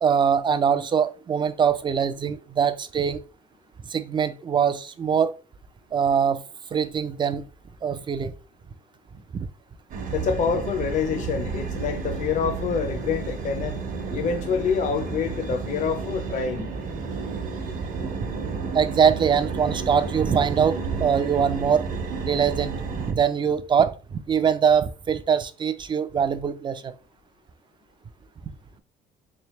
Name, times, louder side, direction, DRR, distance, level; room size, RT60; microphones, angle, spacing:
voice 1, 0.0-3.2 3.9-5.3 5.9-6.4 6.7-7.5 7.8-8.3 9.3-9.5 18.4-21.9 22.3-26.9, right 7 dB, 30° right, 0.4 m, -23 dB
sound 1, 9.9-23.1, right 5 dB, 55° right, 0.9 m, -31 dB
voice 2, 10.1-13.8 14.1-16.7, left 6 dB, 45° left, 0.6 m, -26 dB
3.4 x 3.3 x 3.0 m
cardioid pair, 110°, 17 cm